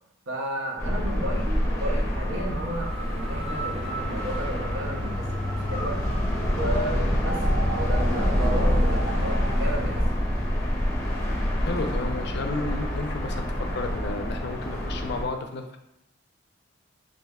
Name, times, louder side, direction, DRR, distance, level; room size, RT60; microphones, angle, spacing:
voice 1, 0.3-6.0 6.5-10.3, right 1 dB, 85° right, 0 dB, 0.8 m, -33 dB
sound 1, 0.8-15.2, equal, 15° left, 0.7 m, -26 dB
sound 2, 2.1-9.6, right 2 dB, 55° right, 0.9 m, -38 dB
sound 3, 2.4-10.2, right 1 dB, 30° right, 0.5 m, -43 dB
voice 2, 11.6-13.5 13.7-15.8, left 3 dB, 60° left, 6 dB, 0.4 m, -32 dB
3.1 x 2.5 x 3.5 m, 0.85 s
head